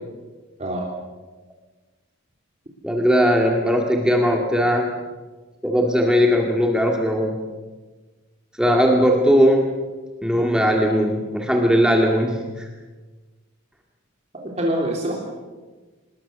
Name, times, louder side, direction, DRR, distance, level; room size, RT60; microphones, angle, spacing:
voice 1, 2.8-4.9 5.6-7.4 8.6-9.7 10.2-12.7, equal, 5° right, 1 dB, 2.0 m, -19 dB
voice 2, 14.3-15.2, right 1 dB, 30° right, -2 dB, 3.3 m, -25 dB
26.0 x 20.5 x 6.9 m, 1.3 s
head